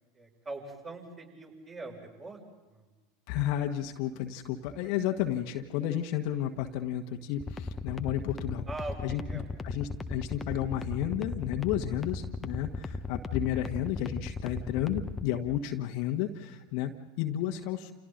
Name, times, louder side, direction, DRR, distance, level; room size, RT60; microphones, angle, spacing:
voice 1, 0.1-2.4 2.7-2.9 8.7-9.5, right 2 dB, 25° right, 0 dB, 6.8 m, -42 dB
voice 2, 3.3-8.6 9.0-17.9, left 11 dB, 55° left, 5 dB, 1.5 m, -32 dB
sound 1, 7.4-15.2, left 3 dB, 15° left, 1.2 m, -37 dB
29.5 x 29.0 x 4.0 m, 1.2 s
figure-of-eight pair, 85°, 0 cm